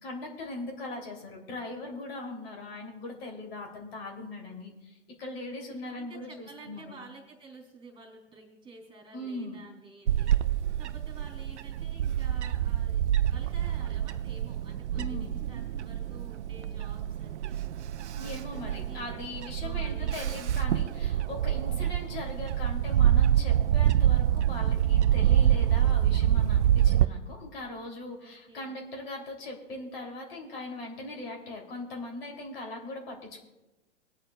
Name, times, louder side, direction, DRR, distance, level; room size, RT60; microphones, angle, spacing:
voice 1, 0.0-6.9 9.1-9.6 15.0-15.4 18.2-33.4, left 2 dB, 50° left, 0 dB, 3.4 m, -40 dB
voice 2, 5.8-13.0 13.3-17.6 18.1-20.4 28.2-28.8, right 3 dB, 15° right, 1 dB, 3.4 m, -51 dB
Bird / Wind, 10.1-27.0, right 10 dB, 65° right, 0.6 m, -26 dB
25.5 x 8.7 x 2.5 m, 1.1 s
figure-of-eight pair, 115°, 37 cm